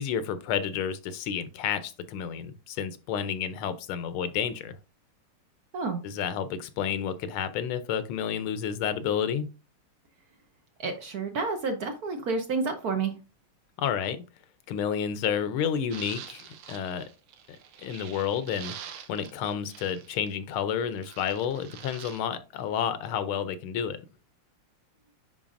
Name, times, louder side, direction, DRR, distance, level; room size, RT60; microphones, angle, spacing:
voice 1, 0.0-4.8 6.0-9.5 13.8-14.2 14.7-17.0 17.8-18.7 19.1-24.0, left 8 dB, 80° left, 1.5 m, -30 dB
voice 2, 10.8-13.1, right 4 dB, 60° right, 1.1 m, -29 dB
sound 1, 15.9-20.5 20.9-22.2, right 9 dB, 85° right, 1.7 m, -45 dB
10.0 x 3.9 x 2.5 m
omnidirectional pair, 2.3 m